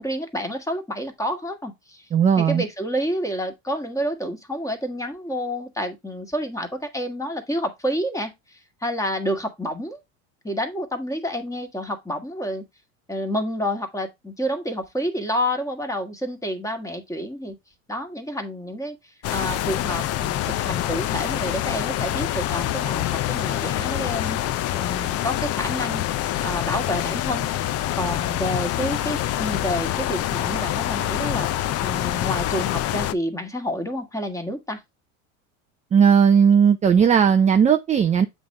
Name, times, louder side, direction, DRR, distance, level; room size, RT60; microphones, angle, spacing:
voice 1, 0.0-2.1 2.4-10.0 10.4-12.7 13.1-17.6 17.9-19.0 19.3-26.0 26.4-27.5 27.9-31.5 31.8-34.8, equal, 10° left, 1.6 m, -29 dB
voice 2, 2.1-2.6 35.9-38.3, right 7 dB, 20° right, 0.5 m, -16 dB
sound 1, 19.2-33.1, left 13 dB, 40° left, 0.6 m, -26 dB
7.8 x 3.5 x 5.3 m
supercardioid pair, 120°, 40 cm